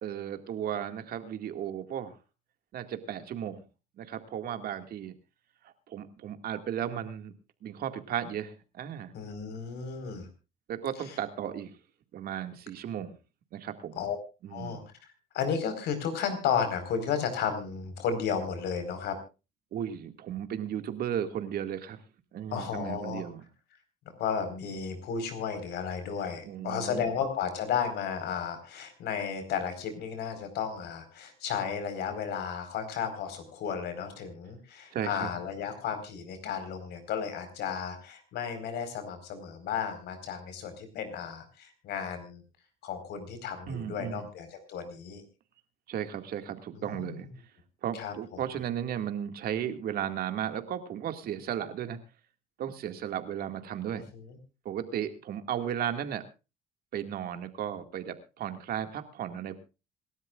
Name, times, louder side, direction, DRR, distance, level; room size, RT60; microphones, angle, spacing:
voice 1, 0.0-2.2 2.7-3.6 4.0-5.1 5.6-7.3 7.6-9.1 10.7-11.7 12.1-13.2 13.5-14.0 14.4-14.9 19.7-22.0 22.3-23.5 26.4-27.1 34.9-35.3 43.7-44.3 45.9-47.3 47.8-52.0 52.6-54.0 54.6-56.2 56.9-59.6, right 9 dB, 65° right, 7 dB, 2.1 m, -35 dB
voice 2, 9.1-10.3 14.0-14.2 14.5-14.8 15.3-19.2 22.5-23.3 24.2-42.4 42.8-45.2 46.7-47.1 47.9-48.1 54.1-54.4, left 7 dB, 75° left, 9 dB, 4.5 m, -33 dB
26.5 x 12.5 x 2.5 m, 0.30 s
cardioid pair, 110°, 17 cm